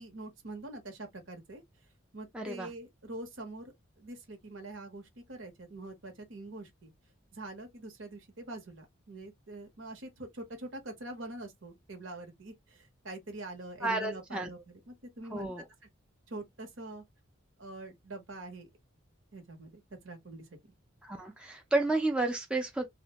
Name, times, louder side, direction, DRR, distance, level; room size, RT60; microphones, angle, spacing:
voice 1, 0.0-1.6 2.1-6.9 7.3-15.5 16.3-17.0 17.6-18.7 19.3-20.7, right 2 dB, 70° right, 0.9 m, -44 dB
voice 2, 2.3-2.7 13.8-14.5 15.3-15.6 21.0-22.9, right 2 dB, 5° right, 0.4 m, -31 dB
2.5 x 2.1 x 2.8 m
head